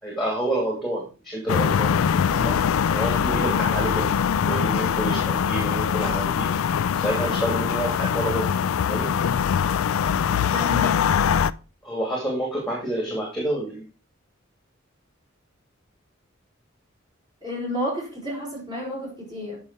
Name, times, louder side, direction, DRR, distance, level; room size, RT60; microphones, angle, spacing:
voice 1, 0.0-2.0 2.3-2.6 2.9-4.1 4.4-6.5 6.9-9.1 11.8-13.8, right 1 dB, ahead, 2.5 m, -28 dB
sound 1, 1.5-11.5, left 7 dB, 90° left, 0.4 m, -22 dB
voice 2, 10.5-11.1 17.4-19.6, left 1 dB, 20° right, 4.5 m, -31 dB
8.5 x 5.7 x 4.7 m
head